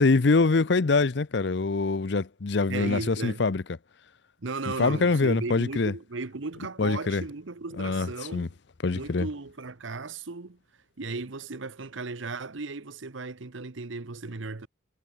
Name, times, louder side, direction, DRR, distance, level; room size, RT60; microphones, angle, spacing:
voice 1, 0.0-3.6 4.8-5.9 6.8-7.2 7.8-8.5 8.8-9.3, left 3 dB, 60° left, 0.6 m, -24 dB
voice 2, 2.7-3.4 4.4-8.5 8.9-10.6 11.0-14.7, right 3 dB, 75° right, 1.0 m, -36 dB
head